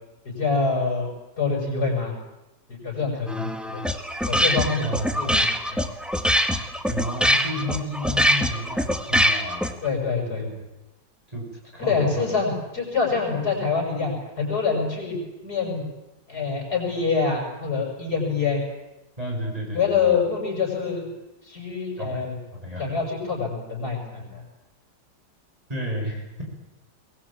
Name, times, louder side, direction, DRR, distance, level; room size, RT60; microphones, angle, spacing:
voice 1, 0.3-1.1 1.4-2.1 2.7-3.8 4.3-5.8 9.8-10.4 11.9-15.2 15.4-15.8 16.3-18.6 19.7-21.1 21.5-22.4 22.8-24.4, left 5 dB, 60° left, 1 dB, 7.3 m, -25 dB
sound 1, 3.3-9.9, equal, ahead, 1.5 m, -23 dB
voice 2, 4.8-5.5 6.9-9.8 10.2-10.5 11.3-11.5 11.7-12.2 19.2-20.2 22.0-22.3 22.5-22.9 25.7-26.4, equal, 20° right, 0 dB, 5.9 m, -32 dB
22.5 x 20.5 x 8.7 m, 1.0 s
omnidirectional pair, 1.9 m